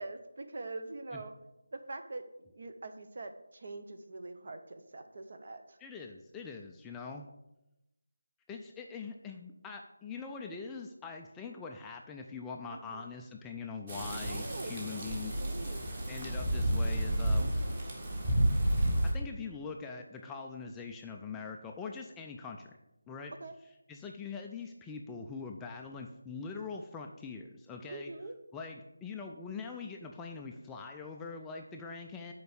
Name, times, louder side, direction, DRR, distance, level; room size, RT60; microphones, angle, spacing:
voice 1, 0.0-1.3 1.7-5.8 12.7-13.1 14.3-15.1 15.4-15.8 17.4-17.8 23.4-23.5 27.9-28.4, right 2 dB, 45° right, 7 dB, 0.8 m, -44 dB
voice 2, 5.8-7.3 8.5-15.4 16.1-17.5 19.0-22.7 23.1-23.3 23.9-28.1 28.5-32.3, left 5 dB, 5° left, 1 dB, 0.3 m, -43 dB
sound 1, 13.9-19.1, right 1 dB, 30° right, 1.8 m, -31 dB
6.8 x 4.6 x 6.8 m, 0.91 s
figure-of-eight pair, 170°, 0 cm